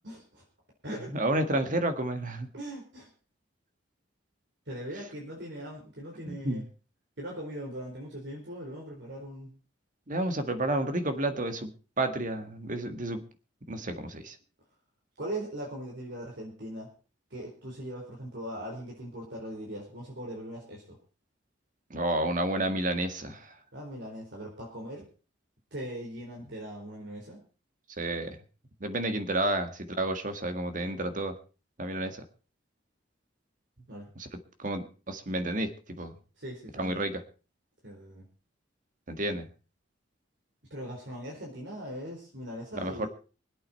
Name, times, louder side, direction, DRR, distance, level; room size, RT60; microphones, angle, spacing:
voice 1, 0.0-0.4 0.8-1.1 2.5-3.1 4.7-6.6 7.2-9.5 15.2-16.9 17.3-21.0 23.7-25.1 25.7-27.4 33.9-34.1 36.4-37.1 37.8-38.3 40.7-43.1, right 1 dB, 65° right, -2 dB, 4.4 m, -40 dB
voice 2, 1.1-2.5 6.2-6.6 10.1-11.7 12.0-13.2 13.7-14.3 21.9-23.5 28.0-28.4 28.8-31.3 31.8-32.2 34.2-34.3 34.6-36.1 36.8-37.2 39.1-39.5 42.7-43.1, right 1 dB, 45° right, 9 dB, 1.7 m, -30 dB
24.5 x 8.6 x 4.4 m, 0.35 s
head